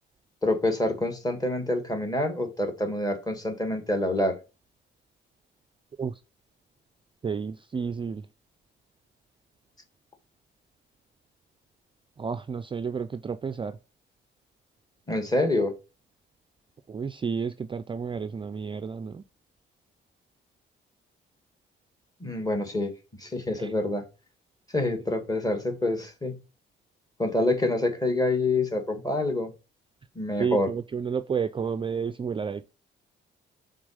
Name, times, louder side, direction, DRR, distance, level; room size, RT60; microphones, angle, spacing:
voice 1, 0.4-4.4 15.1-15.7 22.2-22.9 23.2-24.1 24.7-26.4 27.2-29.5 30.2-30.7, left 2 dB, 20° left, 1.8 m, -26 dB
voice 2, 7.2-8.2 12.2-13.8 16.9-19.2 23.6-23.7 30.4-32.7, right 6 dB, 25° right, 0.4 m, -31 dB
6.1 x 4.0 x 4.9 m
cardioid pair, 90°, 20 cm